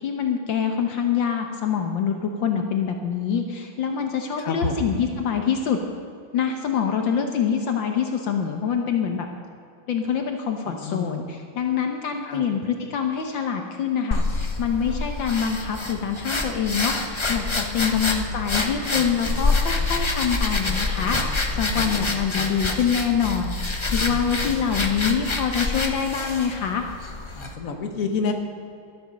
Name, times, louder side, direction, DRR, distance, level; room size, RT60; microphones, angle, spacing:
voice 1, 0.0-5.8 6.3-9.3 9.9-11.2 11.6-26.8, left 7 dB, 70° left, 4 dB, 1.6 m, -25 dB
voice 2, 4.4-4.8 10.7-11.2 12.2-12.4 17.9-18.0 21.7-22.0 27.3-28.3, left 4 dB, 45° left, 4 dB, 1.6 m, -29 dB
sound 1, 14.1-27.5, left 3 dB, 30° left, 0.5 m, -27 dB
sound 2, 18.1-24.9, right 1 dB, 50° right, 3.7 m, -36 dB
12.5 x 12.0 x 6.6 m, 2.6 s
omnidirectional pair, 2.2 m